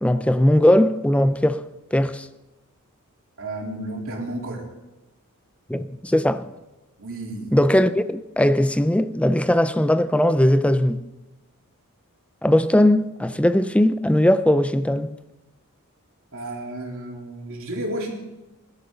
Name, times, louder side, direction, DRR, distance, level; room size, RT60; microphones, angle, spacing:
voice 1, 0.0-1.6 1.9-2.3 5.7-6.5 7.5-11.0 12.4-15.2, left 1 dB, 5° left, 0.5 m, -19 dB
voice 2, 3.4-4.7 7.0-7.6 16.3-18.1, right 1 dB, 65° right, 3.6 m, -32 dB
20.5 x 12.5 x 4.0 m
head